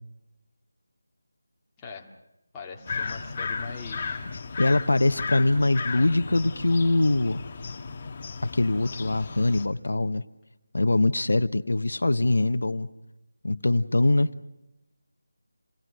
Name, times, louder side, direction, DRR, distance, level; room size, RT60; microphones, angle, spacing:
voice 1, 1.8-2.1 2.5-4.3, left 4 dB, 10° left, -2 dB, 2.3 m, -41 dB
sound 1, 2.9-9.7, left 4 dB, 30° left, 1.8 m, -35 dB
voice 2, 4.6-7.4 8.4-10.2 10.7-12.9 13.4-14.3, left 2 dB, 75° left, 11 dB, 1.1 m, -23 dB
29.0 x 20.0 x 6.4 m, 0.95 s
figure-of-eight pair, 170°, 0 cm